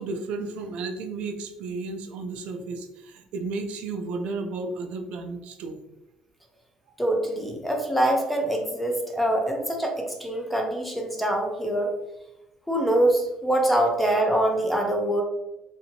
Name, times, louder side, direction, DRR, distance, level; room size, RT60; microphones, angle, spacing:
voice 1, 0.0-5.8, right 3 dB, 65° right, 6 dB, 0.3 m, -33 dB
voice 2, 7.0-11.9 12.7-15.2, right 1 dB, 5° left, 1 dB, 0.5 m, -24 dB
2.7 x 2.6 x 2.8 m, 0.93 s
cardioid pair, 150°, 2 cm